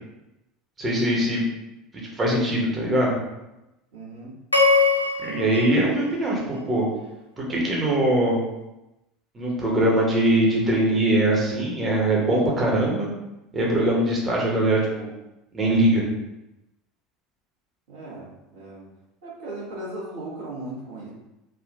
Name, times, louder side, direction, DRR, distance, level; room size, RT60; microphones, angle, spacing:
voice 1, 0.8-1.4 2.2-3.1 5.2-6.8 7.4-8.4 9.3-13.1 13.5-15.1 15.5-16.0, right 1 dB, 25° right, -3 dB, 1.0 m, -22 dB
voice 2, 3.9-4.3 17.9-18.8 19.2-21.1, right 2 dB, 65° right, -6 dB, 1.2 m, -37 dB
sound 1, 4.5-6.9, left 4 dB, 85° left, 0.4 m, -23 dB
3.5 x 2.4 x 2.5 m, 0.94 s
figure-of-eight pair, 70°, 0 cm